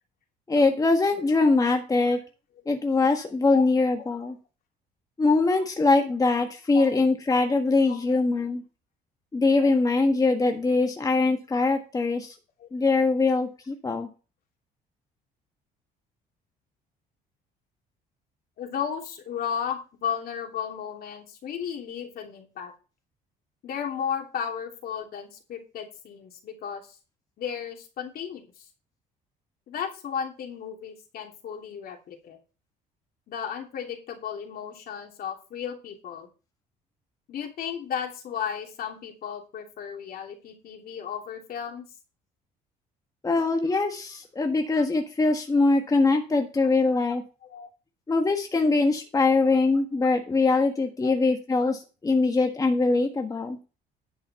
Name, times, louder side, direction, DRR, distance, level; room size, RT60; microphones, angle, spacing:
voice 1, 0.5-2.2 2.7-4.3 5.2-8.6 9.3-12.3 12.7-14.1 43.2-47.2 48.1-53.6, left 3 dB, 20° left, 4 dB, 1.5 m, -22 dB
voice 2, 18.6-22.7 23.6-27.0 27.4-28.4 29.7-32.4 33.3-36.3 37.3-41.9 47.5-47.7 51.0-51.2, left 8 dB, 60° left, 3 dB, 2.9 m, -34 dB
10.5 x 5.6 x 5.8 m, 0.33 s
cardioid pair, 110°, 17 cm